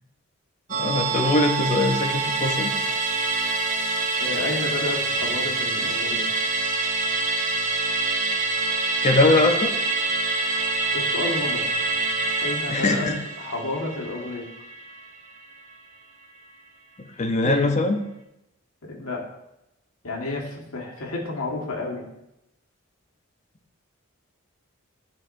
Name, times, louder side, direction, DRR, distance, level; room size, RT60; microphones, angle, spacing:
Musical instrument, 0.7-15.4 15.7-15.8, right 3 dB, 35° right, 0.8 m, -26 dB
voice 1, 0.8-2.7 9.0-9.7 12.7-13.2 17.0-18.0, left 2 dB, 30° left, 4 dB, 0.6 m, -21 dB
voice 2, 4.2-6.2 10.9-11.8 12.4-13.1 13.4-14.4 17.4-17.8 18.8-19.2 20.0-22.1, left 2 dB, 90° left, -1 dB, 1.6 m, -30 dB
12.0 x 4.3 x 2.6 m, 0.88 s
head